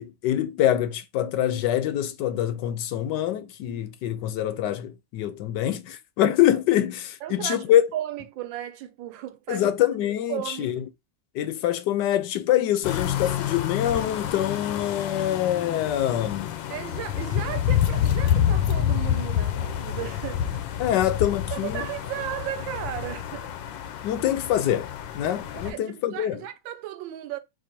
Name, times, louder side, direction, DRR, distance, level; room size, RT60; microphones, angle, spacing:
voice 1, 0.0-7.8 9.5-10.8 11.3-16.5 20.8-21.9 24.0-26.4, left 11 dB, 75° left, 1.2 m, -25 dB
voice 2, 7.2-7.6 7.9-9.7 10.3-10.8 16.7-21.0 21.5-23.6 25.6-27.4, right 13 dB, 90° right, 1.4 m, -35 dB
sound 1, 12.8-25.7, left 10 dB, 90° left, 1.4 m, -28 dB
4.4 x 2.5 x 4.3 m
omnidirectional pair, 2.0 m